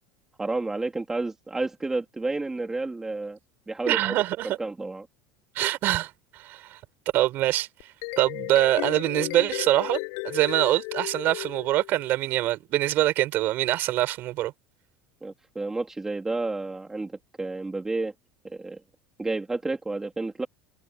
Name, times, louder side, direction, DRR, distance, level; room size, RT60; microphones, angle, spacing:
voice 1, 0.4-3.4 3.7-4.2 4.4-5.1 15.2-18.1 18.4-18.8 19.2-20.5, right 3 dB, 10° right, 3.4 m, -31 dB
voice 2, 3.9-4.6 5.5-6.8 7.1-7.7 8.2-10.0 10.2-14.5, right 15 dB, 50° right, 7.7 m, -24 dB
sound 1, 7.8-12.2, left 40 dB or more, 70° left, 7.3 m, -34 dB
supercardioid pair, 135°, 4 cm